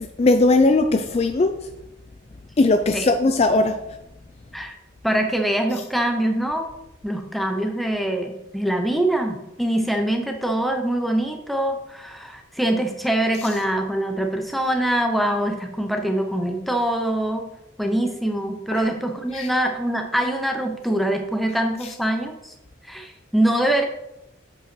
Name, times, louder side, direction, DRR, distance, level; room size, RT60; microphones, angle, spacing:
voice 1, 0.2-1.5 2.6-3.8 18.7-18.9 19.3-19.5, left 2 dB, 30° left, 8 dB, 0.3 m, -18 dB
voice 2, 5.0-6.7 7.0-17.5 17.8-22.5 22.8-23.9, right 1 dB, ahead, 4 dB, 0.7 m, -24 dB
7.9 x 5.4 x 4.4 m, 0.88 s
head